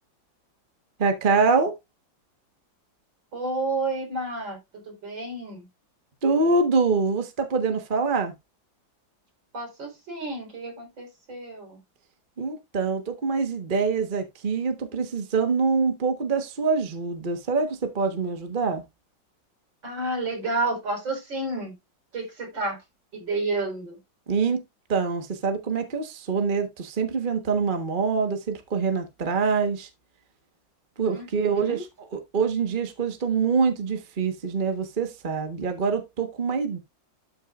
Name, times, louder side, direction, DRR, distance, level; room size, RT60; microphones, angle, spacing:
voice 1, 1.0-1.7 6.2-8.3 12.4-18.8 24.3-24.6 24.9-29.9 31.0-31.9 32.1-36.8, right 4 dB, 30° right, 1.2 m, -25 dB
voice 2, 3.3-5.7 9.5-11.8 19.8-21.8 22.1-22.8 23.1-24.0 31.0-31.9, right 2 dB, 70° right, 5.0 m, -31 dB
12.0 x 6.0 x 2.4 m
omnidirectional pair, 2.1 m